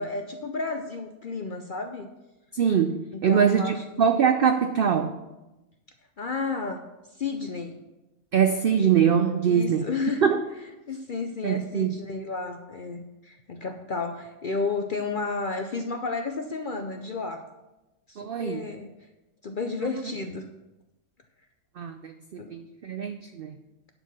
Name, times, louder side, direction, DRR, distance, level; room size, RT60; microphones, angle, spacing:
voice 1, 0.0-2.1 3.1-3.8 6.2-7.8 9.5-10.2 10.9-17.4 18.1-18.9 19.4-20.5 22.4-22.6, left 4 dB, 55° left, 5 dB, 0.5 m, -32 dB
voice 2, 2.5-5.2 8.3-9.9 10.2-10.4 11.4-11.9 18.2-18.7 21.8-23.6, right 7 dB, 75° right, 8 dB, 0.5 m, -23 dB
10.5 x 4.7 x 6.0 m, 1.0 s
omnidirectional pair, 1.5 m